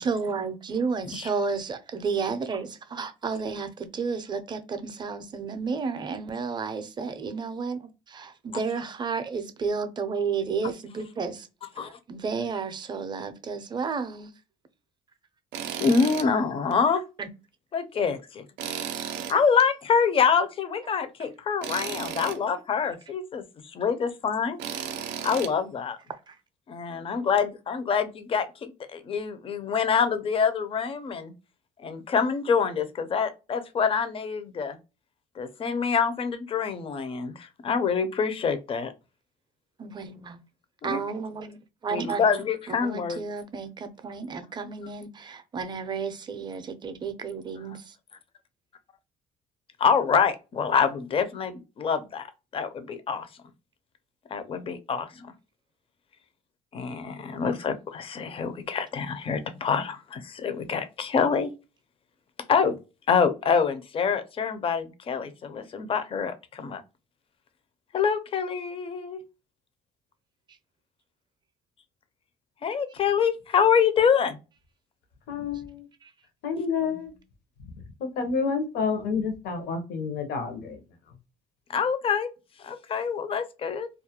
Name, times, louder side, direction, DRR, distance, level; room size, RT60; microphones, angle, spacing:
voice 1, 0.0-11.5 11.8-14.3 17.2-17.3 26.3-26.4 39.8-40.4 40.8-41.6 41.8-42.3 42.7-47.9 76.0-76.1, right 5 dB, 25° right, 0.4 m, -32 dB
Tools, 15.5-16.3 16.7-16.8 18.6-19.7 21.6-22.4 24.6-25.5, right 9 dB, 90° right, 0.4 m, -34 dB
voice 2, 15.8-17.0 17.7-18.4 19.3-24.6 25.2-26.0 26.7-31.3 31.8-34.8 35.4-38.9 40.8-41.0 41.9-43.2 49.8-52.3 52.5-53.3 54.3-55.3 56.7-61.5 62.5-62.7 63.1-66.8 67.9-69.2 72.6-74.4 81.7-82.3 82.6-83.9, left 6 dB, 35° left, 0.4 m, -26 dB
voice 3, 75.3-75.9 76.4-77.1 78.0-80.8, left 5 dB, 70° left, 0.7 m, -29 dB
2.3 x 2.1 x 2.8 m
cardioid pair, 110°, 17 cm